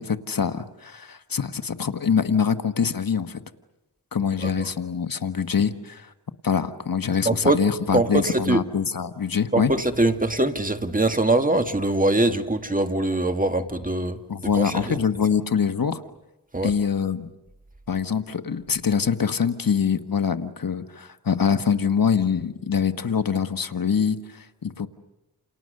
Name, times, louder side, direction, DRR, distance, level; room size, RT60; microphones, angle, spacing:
voice 1, 0.0-3.4 4.1-6.1 6.4-9.7 14.3-16.0 16.6-17.3 17.9-24.9, left 6 dB, 55° left, 9 dB, 1.3 m, -24 dB
voice 2, 7.3-7.6 7.9-8.6 9.5-14.2 14.6-15.0 16.5-16.7, right 2 dB, 20° right, 7 dB, 1.8 m, -22 dB
29.0 x 29.0 x 6.6 m, 0.98 s
wide cardioid pair, 70°, 40 cm